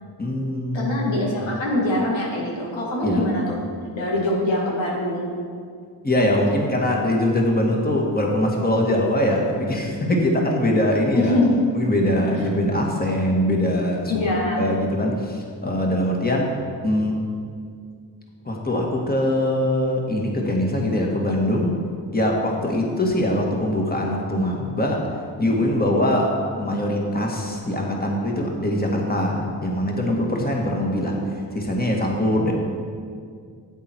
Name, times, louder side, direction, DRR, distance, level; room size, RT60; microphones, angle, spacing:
voice 1, 0.2-1.0 3.0-3.3 6.0-11.4 11.7-14.1 14.6-16.5 16.8-17.3 18.5-21.8 22.1-25.1 25.4-32.5, left 1 dB, 20° left, 0 dB, 1.9 m, -22 dB
voice 2, 0.7-3.6 4.0-5.3 11.1-11.6 14.1-14.6, left 1 dB, 85° left, -3 dB, 2.0 m, -23 dB
10.0 x 8.1 x 4.6 m, 2.1 s
cardioid pair, 45°, 44 cm